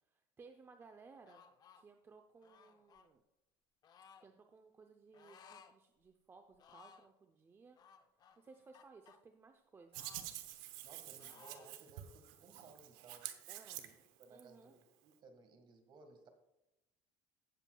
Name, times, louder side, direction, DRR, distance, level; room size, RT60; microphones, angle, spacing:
voice 1, 0.0-1.4 1.8-3.2 4.2-7.8 8.4-10.0 13.5-13.8 14.3-14.8, right 4 dB, 20° right, 5 dB, 0.6 m, -60 dB
sound 1, 1.2-1.8 2.4-3.1 3.8-4.3 5.1-5.7 6.0-6.1 6.5-7.1 7.8-9.2 9.9-10.9 11.2-11.8, left 6 dB, 35° left, 0.7 m, -61 dB
Hands, 9.9-14.4, right 13 dB, 80° right, 0.9 m, -48 dB
voice 2, 10.8-13.3 13.8-16.3, right 3 dB, 40° right, 7 dB, 1.6 m, -61 dB
16.5 x 7.2 x 2.3 m, 0.94 s
cardioid pair, 135°, 12 cm